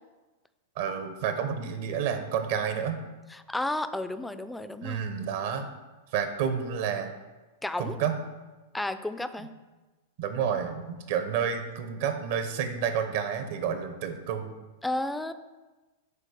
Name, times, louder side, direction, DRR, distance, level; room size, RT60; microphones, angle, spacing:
voice 1, 0.8-3.0 4.8-5.7 6.1-7.1 7.8-8.2 10.2-14.5, right 7 dB, 60° right, 8 dB, 0.9 m, -30 dB
voice 2, 3.3-5.0 7.6-8.0 8.7-9.5 14.8-15.3, left 1 dB, 5° left, 11 dB, 0.4 m, -32 dB
6.8 x 4.6 x 5.1 m, 1.2 s
hypercardioid pair, 105°, 0 cm